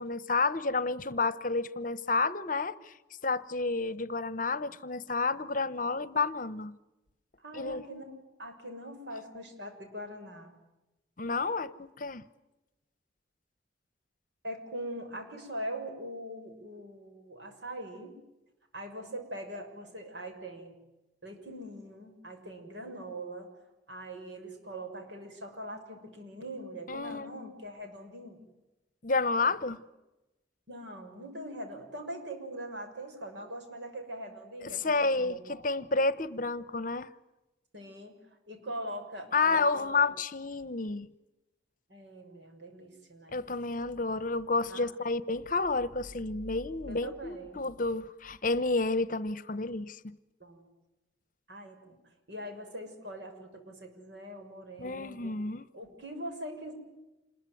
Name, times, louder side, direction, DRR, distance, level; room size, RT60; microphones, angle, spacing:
voice 1, 0.0-2.9 3.2-6.7 7.5-7.8 11.2-12.2 26.9-27.4 29.0-29.8 34.6-37.1 39.3-41.1 43.3-50.1 54.8-55.7, left 3 dB, 45° left, 1.0 m, -30 dB
voice 2, 7.4-8.1 8.4-10.5 14.4-18.2 18.7-20.7 21.2-23.5 23.9-28.4 30.7-35.6 37.7-38.2 38.5-40.1 41.9-43.4 44.7-44.9 46.9-47.6 50.4-50.7 51.5-52.0 52.3-55.3 55.7-56.7, right 1 dB, 75° right, 6.7 m, -42 dB
27.5 x 21.5 x 9.4 m
head